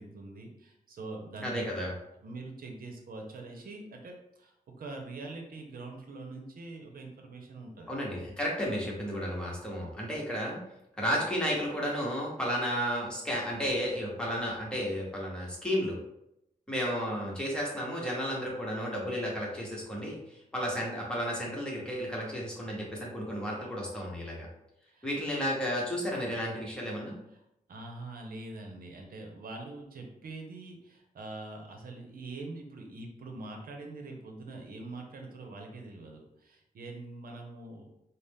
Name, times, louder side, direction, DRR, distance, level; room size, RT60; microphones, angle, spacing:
voice 1, 0.0-1.9 2.2-7.9 24.9-25.1 27.7-37.9, right 2 dB, 75° right, 2 dB, 0.8 m, -44 dB
voice 2, 1.4-1.9 7.9-10.6 11.0-16.0 16.7-24.5 25.0-27.2, equal, 5° left, -4 dB, 1.1 m, -33 dB
4.0 x 2.1 x 3.5 m, 0.83 s
wide cardioid pair, 120°, 15 cm